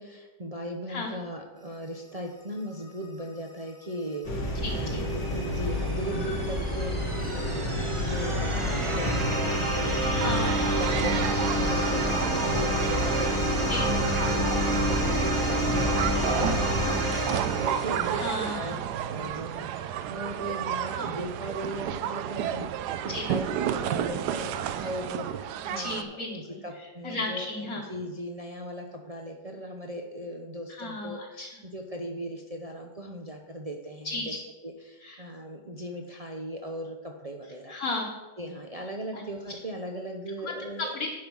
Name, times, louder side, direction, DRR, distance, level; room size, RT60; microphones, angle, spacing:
voice 1, 0.0-10.0 10.3-18.2 18.5-18.8 19.1-34.3 34.6-37.8 38.4-41.0, equal, 50° right, 1 dB, 0.4 m, -38 dB
sound 1, 4.2-16.9, left 1 dB, 85° left, 2.9 m, -30 dB
voice 2, 4.6-5.0 10.1-10.5 13.7-13.9 18.1-18.8 20.9-21.1 23.1-23.3 25.6-26.6 27.0-27.8 30.7-31.5 34.0-34.4 35.0-35.2 37.7-38.1 39.1-39.2 40.4-40.5 40.8-41.1, left 2 dB, 55° left, -3 dB, 1.6 m, -34 dB
sound 2, 4.7-18.6, right 1 dB, 20° right, 1.0 m, -30 dB
sound 3, 10.2-26.0, right 10 dB, 75° right, 1.1 m, -32 dB
11.0 x 5.4 x 6.2 m, 1.1 s
omnidirectional pair, 2.0 m